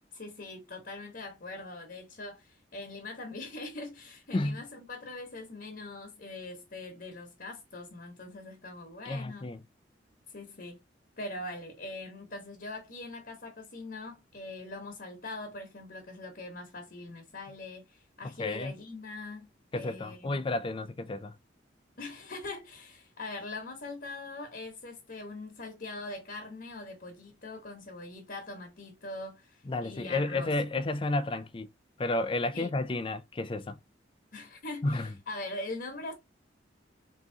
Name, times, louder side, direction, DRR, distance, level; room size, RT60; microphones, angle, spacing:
voice 1, 0.1-9.5 10.3-10.8 11.2-19.5 19.7-20.4 22.0-30.8 32.5-32.7 34.3-36.1, left 2 dB, 55° left, 1.1 m, -42 dB
voice 2, 9.1-9.6 18.4-18.7 19.7-21.3 29.7-31.7 32.0-33.8 34.8-35.1, left 2 dB, 30° left, 0.4 m, -31 dB
3.6 x 2.9 x 3.8 m
head